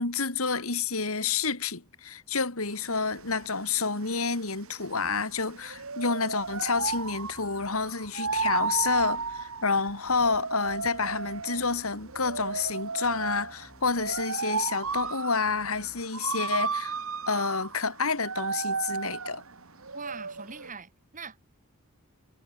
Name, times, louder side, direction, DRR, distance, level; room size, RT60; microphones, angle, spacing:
voice 1, 0.0-16.9 17.3-19.4, left 4 dB, 80° left, 3.1 m, -29 dB
sound 1, 2.7-20.7, right 5 dB, 75° right, 2.0 m, -34 dB
sound 2, 6.4-7.9 8.2-9.4 10.0-10.3 10.6-12.7 13.0-14.2 14.8-15.1 15.4-16.0, equal, 10° left, 6.7 m, -55 dB
voice 2, 19.9-21.4, right 5 dB, 35° right, 5.9 m, -42 dB
head